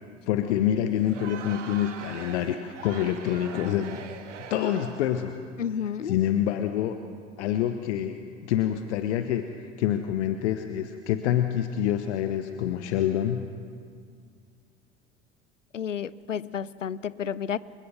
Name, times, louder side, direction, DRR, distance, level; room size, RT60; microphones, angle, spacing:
voice 1, 0.3-4.0 4.5-5.4 6.0-7.0 7.4-8.2 8.5-13.5, left 11 dB, 65° left, 9 dB, 1.1 m, -27 dB
Crowd, 1.0-5.2, right 7 dB, 75° right, 1.7 m, -42 dB
voice 2, 5.6-6.2 15.7-17.6, left 8 dB, 85° left, 20 dB, 0.6 m, -31 dB
28.0 x 16.5 x 6.8 m, 2.2 s
figure-of-eight pair, 60°, 37 cm